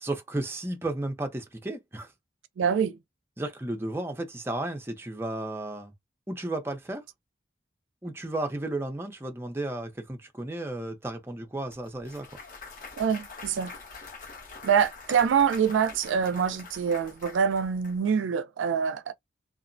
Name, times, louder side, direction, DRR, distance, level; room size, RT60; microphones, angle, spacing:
voice 1, 0.0-2.1 3.4-5.9 6.3-7.0 8.0-12.3, right 2 dB, 10° right, 0.5 m, -33 dB
voice 2, 2.6-3.0 13.0-13.7 14.6-19.1, right 7 dB, 80° right, 0.3 m, -25 dB
Clapping / Cheering / Applause, 11.7-17.9, left 4 dB, 45° left, 0.9 m, -45 dB
2.7 x 2.1 x 2.5 m
head